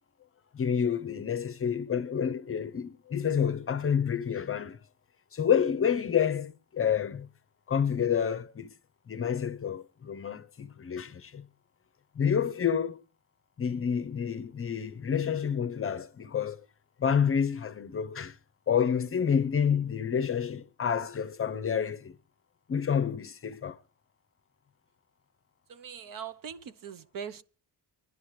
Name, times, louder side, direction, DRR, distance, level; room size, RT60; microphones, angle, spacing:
voice 1, 0.5-4.8 5.3-7.3 7.7-8.7 9.1-11.4 12.2-13.0 13.6-16.6 17.0-18.4 18.7-22.1 22.7-23.8, left 7 dB, 35° left, 0.7 m, -29 dB
voice 2, 25.7-27.4, right 7 dB, 55° right, 0.9 m, -41 dB
26.0 x 11.0 x 3.1 m
cardioid pair, 125°, 40 cm